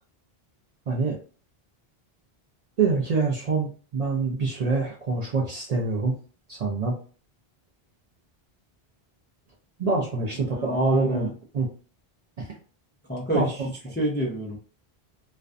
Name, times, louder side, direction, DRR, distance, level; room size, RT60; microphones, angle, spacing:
voice 1, 0.9-1.2 2.8-6.2 6.5-7.0 9.8-11.7 12.4-12.5 13.3-13.5 13.9-14.0, right 4 dB, 50° right, -1 dB, 0.5 m, -26 dB
voice 2, 10.1-11.3 13.1-13.5 13.9-14.6, equal, 15° left, -2 dB, 0.3 m, -28 dB
2.5 x 2.1 x 2.4 m, 0.38 s
omnidirectional pair, 1.0 m